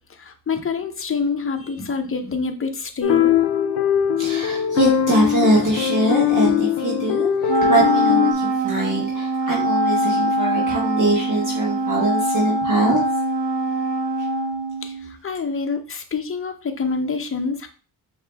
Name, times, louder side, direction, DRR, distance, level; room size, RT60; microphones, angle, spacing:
voice 1, 0.2-3.3 14.8-14.9 15.2-17.7, left 4 dB, 30° left, 6 dB, 0.7 m, -26 dB
sound 1, 3.0-8.3, left 9 dB, 65° left, 0.5 m, -20 dB
voice 2, 4.2-13.0, right 2 dB, 45° right, -4 dB, 1.4 m, -22 dB
Wind instrument woodwind instrument, 7.5-15.1, right 1 dB, 75° right, 0.9 m, -23 dB
4.9 x 2.9 x 3.3 m, 0.38 s
wide cardioid pair, 95°, 43 cm